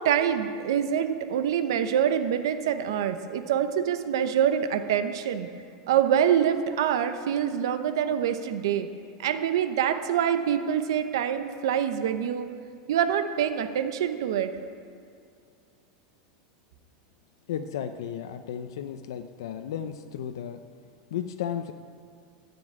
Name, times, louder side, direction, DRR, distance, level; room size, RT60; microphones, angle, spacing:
voice 1, 0.0-5.5 5.9-8.9 9.2-12.5 12.9-14.5, right 9 dB, 80° right, 9 dB, 0.9 m, -25 dB
voice 2, 17.5-20.6 21.1-21.7, left 9 dB, 85° left, 8 dB, 0.6 m, -34 dB
13.5 x 7.1 x 8.9 m, 2.3 s
supercardioid pair, 180°, 2 cm